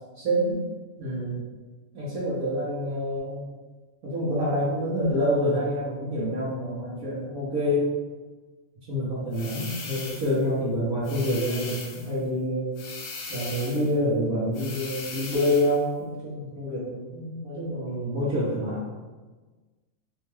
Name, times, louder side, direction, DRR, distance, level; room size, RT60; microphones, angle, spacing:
voice 1, 0.2-0.6 1.0-1.4 1.9-3.5 4.0-7.9 8.9-12.7 13.3-18.8, equal, 85° right, -10 dB, 1.5 m, -27 dB
sound 1, 9.3-10.4 11.0-12.1 12.8-13.9 14.5-15.8, left 4 dB, 90° left, 1.2 m, -38 dB
4.1 x 2.3 x 3.1 m, 1.3 s
omnidirectional pair, 1.5 m